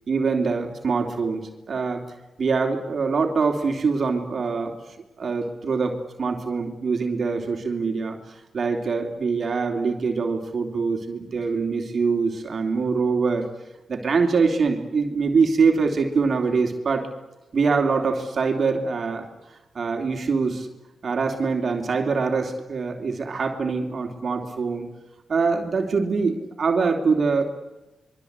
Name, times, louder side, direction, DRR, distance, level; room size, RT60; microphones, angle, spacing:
voice 1, 0.1-2.0 2.4-4.8 5.2-13.5 13.9-17.1 17.5-19.3 19.7-20.7 21.0-24.9 25.3-27.4, right 4 dB, 60° right, 3 dB, 3.1 m, -24 dB
25.5 x 23.5 x 8.2 m, 1.0 s
supercardioid pair, 45°, 0 cm